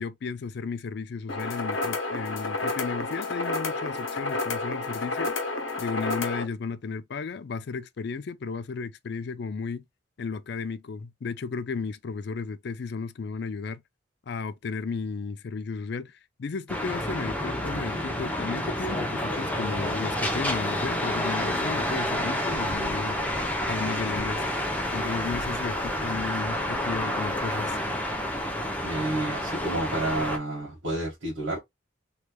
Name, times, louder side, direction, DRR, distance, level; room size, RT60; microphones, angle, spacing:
voice 1, 0.0-5.3 5.8-9.8 10.2-13.8 14.3-23.2 23.6-24.4 24.9-27.8, left 4 dB, 55° left, 0.4 m, -34 dB
sound 1, 1.3-6.4, left 3 dB, 70° left, 0.8 m, -30 dB
sound 2, 16.7-30.4, left 1 dB, 10° left, 0.6 m, -29 dB
voice 2, 28.8-31.6, right 2 dB, 70° right, 1.5 m, -30 dB
3.2 x 3.1 x 2.3 m
head